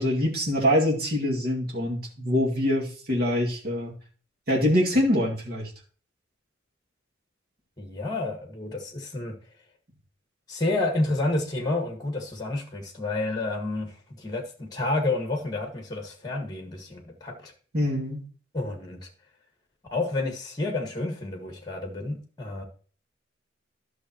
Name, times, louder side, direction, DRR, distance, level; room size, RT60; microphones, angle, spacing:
voice 1, 0.0-3.9 4.5-5.7 17.7-18.2, left 1 dB, 55° right, 2.2 m, -24 dB
voice 2, 7.8-9.3 10.5-17.5 18.5-19.1 19.9-22.6, left 2 dB, 20° left, 1.7 m, -30 dB
12.0 x 6.4 x 3.0 m
head